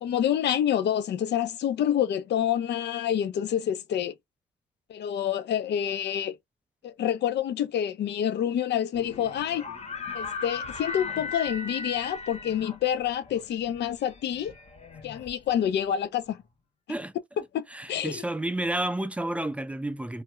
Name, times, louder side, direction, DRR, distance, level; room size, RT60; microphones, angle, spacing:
voice 1, 0.0-4.1 4.9-6.4 6.8-9.6 10.1-14.5 15.0-16.4 17.5-18.2, left 10 dB, 60° left, 0.5 m, -27 dB
sound 1, 8.9-15.8, left 4 dB, 30° left, 0.8 m, -38 dB
voice 2, 17.7-20.2, right 1 dB, 5° right, 0.3 m, -30 dB
2.3 x 2.1 x 3.0 m
cardioid pair, 90°, 20 cm